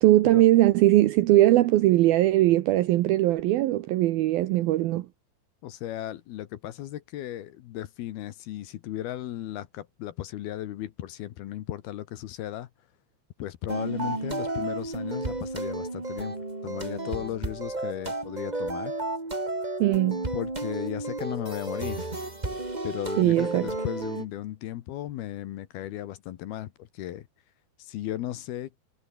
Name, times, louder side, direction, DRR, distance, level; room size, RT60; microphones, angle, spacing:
voice 1, 0.0-5.1 19.8-20.3 23.2-23.7, right 15 dB, 75° right, 2.2 m, -20 dB
voice 2, 5.6-12.7 13.4-16.4 16.6-19.0 20.3-22.1 22.8-27.3 27.8-28.7, left 13 dB, 70° left, 2.8 m, -35 dB
sound 1, 13.7-24.2, right 2 dB, 15° right, 1.7 m, -32 dB
omnidirectional pair, 5.2 m